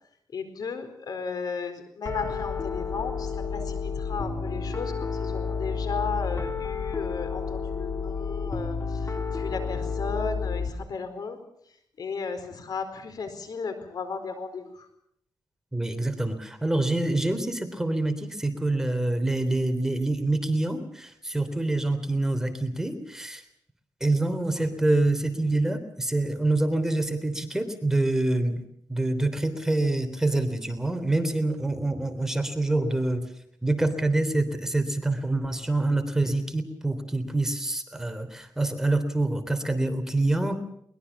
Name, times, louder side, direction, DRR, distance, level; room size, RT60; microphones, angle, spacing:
voice 1, 0.3-11.4 12.0-14.9, left 5 dB, 65° left, 9 dB, 4.4 m, -35 dB
Piano, 2.1-10.7, left 5 dB, 40° left, 3.4 m, -31 dB
voice 2, 15.7-23.4 24.0-28.6 28.9-33.2 33.6-40.6, right 2 dB, 5° right, 8 dB, 3.2 m, -26 dB
22.5 x 21.5 x 7.1 m, 0.72 s
cardioid pair, 80°, 7 cm